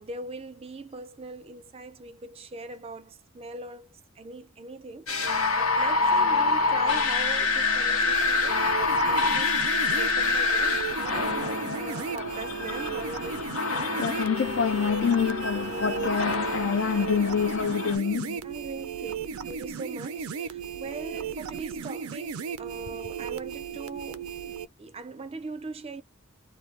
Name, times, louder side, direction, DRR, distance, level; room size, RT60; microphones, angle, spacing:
voice 1, 0.0-9.6 9.9-13.4 18.4-24.3 24.8-26.0, right 3 dB, 30° right, 0.4 m, -41 dB
sound 1, 5.1-18.0, left 3 dB, 85° left, 1.0 m, -26 dB
sound 2, 8.0-24.7, right 6 dB, 85° right, 0.5 m, -36 dB
voice 2, 14.0-18.4, left 6 dB, 60° left, 0.5 m, -26 dB
2.8 x 2.2 x 3.2 m
head